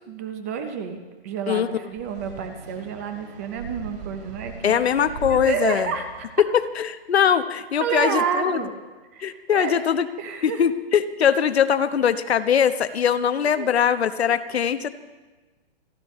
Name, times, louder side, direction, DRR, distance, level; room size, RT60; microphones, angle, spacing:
voice 1, 0.1-6.3 7.8-8.7 9.1-9.8 10.2-10.6 13.6-13.7, right 6 dB, 15° right, 7 dB, 0.5 m, -30 dB
sound 1, 1.9-6.8, right 4 dB, 75° right, 6.1 m, -40 dB
voice 2, 4.6-5.9 6.8-8.6 9.2-10.1 10.4-14.9, left 8 dB, 80° left, 11 dB, 1.0 m, -21 dB
28.0 x 11.5 x 3.1 m, 1.2 s
hypercardioid pair, 165°, 31 cm